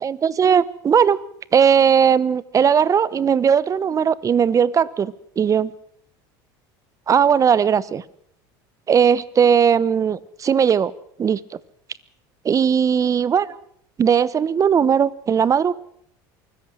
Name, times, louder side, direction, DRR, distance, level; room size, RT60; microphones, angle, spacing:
voice 1, 0.0-1.2 1.5-5.7 7.1-8.0 8.9-10.9 11.2-11.6 12.4-13.5 14.0-15.7, right 7 dB, 30° right, 20 dB, 1.0 m, -18 dB
24.0 x 14.5 x 7.8 m, 0.68 s
supercardioid pair, 105°, 11 cm